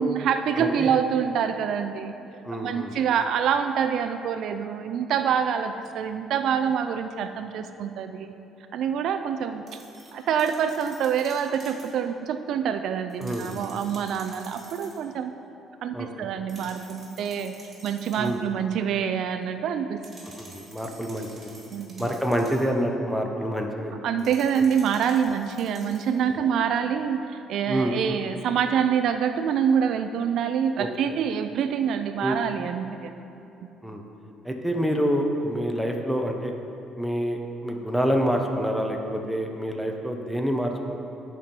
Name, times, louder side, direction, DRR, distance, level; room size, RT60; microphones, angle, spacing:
voice 1, 0.0-2.1 2.5-8.3 8.7-9.6 10.1-15.3 15.8-17.5 17.8-20.0 21.7-22.1 24.0-27.2 27.5-33.1, right 7 dB, 65° right, 8 dB, 0.3 m, -26 dB
voice 2, 0.6-0.9 2.4-2.9 13.2-13.6 15.9-16.3 18.2-18.4 20.4-21.5 22.0-23.9 26.3-26.5 27.7-28.0 30.8-30.9 32.2-32.4 33.8-34.0 34.4-36.5 37.0-41.0, equal, ahead, 2 dB, 0.7 m, -27 dB
sound 1, 9.7-12.0 13.1-15.0 16.5-18.4 20.0-22.8 24.2-26.2, right 2 dB, 25° right, 1.7 m, -49 dB
10.5 x 4.5 x 5.3 m, 2.8 s
cardioid pair, 135°, 0 cm